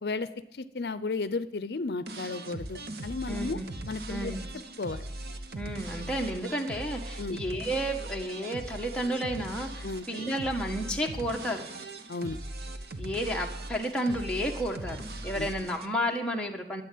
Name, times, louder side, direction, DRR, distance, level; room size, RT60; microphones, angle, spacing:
voice 1, 0.0-3.6 3.9-4.3 4.8-5.1 7.2-7.4 9.8-10.1 12.1-12.4 15.4-15.5, left 3 dB, 70° left, 13 dB, 0.6 m, -34 dB
sound 1, 2.1-15.9, right 1 dB, 65° right, 1.0 m, -40 dB
voice 2, 3.3-3.6 4.1-4.4 5.5-11.6 13.0-15.0 15.2-16.8, equal, 5° left, -1 dB, 1.4 m, -32 dB
sound 2, 5.5-6.4 10.2-11.2 14.6-15.8, left 1 dB, 15° right, 3.8 m, -55 dB
13.0 x 8.0 x 9.4 m, 0.89 s
head